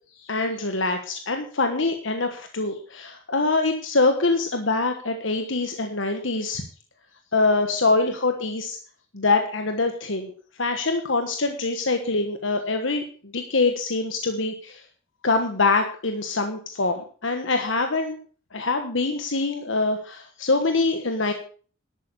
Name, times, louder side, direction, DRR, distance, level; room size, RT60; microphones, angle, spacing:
voice 1, 0.2-6.6 7.3-8.8 9.1-10.3 10.6-13.0 13.3-14.8 15.2-18.2 18.5-21.3, left 3 dB, 70° left, 6 dB, 1.3 m, -24 dB
11.5 x 8.6 x 7.0 m, 0.42 s
head